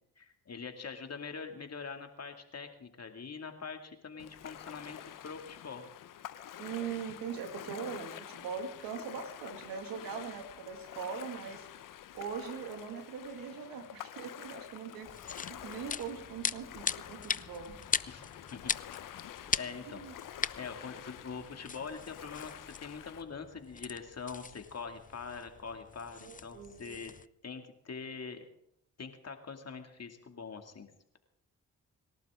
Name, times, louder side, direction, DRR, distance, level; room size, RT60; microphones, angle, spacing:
voice 1, 0.2-5.8 18.1-18.7 19.5-20.1 20.5-27.1 27.4-28.5 29.0-31.2, left 5 dB, 50° left, 5 dB, 2.5 m, -44 dB
Ocean, 4.2-23.2, left 11 dB, 70° left, 1.0 m, -48 dB
voice 2, 6.6-11.7 12.1-17.7 19.9-20.1 26.2-27.0, right 6 dB, 85° right, 5 dB, 2.4 m, -41 dB
sound 1, 15.0-27.3, left 5 dB, 25° left, 0.5 m, -40 dB
26.5 x 12.0 x 3.8 m, 0.72 s
supercardioid pair, 50°, 34 cm